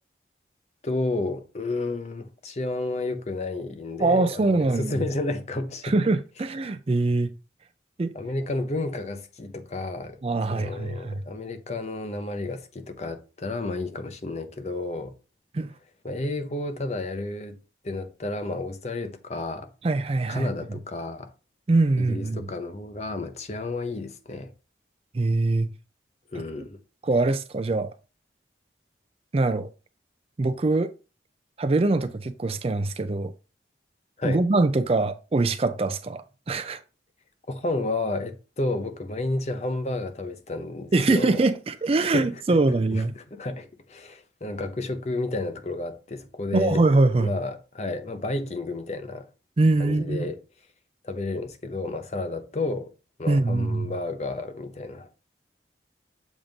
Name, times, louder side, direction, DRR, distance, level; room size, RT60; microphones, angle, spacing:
voice 1, 0.8-5.9 8.1-10.2 10.5-15.1 16.0-17.6 17.8-19.7 20.3-21.3 22.0-24.5 26.3-26.8 34.2-34.4 37.5-41.4 42.0-42.4 42.7-46.8 47.2-49.3 49.8-50.4 51.0-52.9 53.2-55.1, left 2 dB, 35° left, 0.6 m, -31 dB
voice 2, 4.0-5.0 5.8-7.3 8.0-8.1 10.2-11.2 15.5-15.7 19.8-20.5 21.7-22.5 25.1-25.7 27.0-27.9 29.3-29.7 30.4-30.9 31.6-33.3 34.2-36.8 40.9-43.1 46.5-47.3 49.6-50.3 53.3-53.9, right 2 dB, 35° right, 0.4 m, -23 dB
7.3 x 2.5 x 5.2 m
head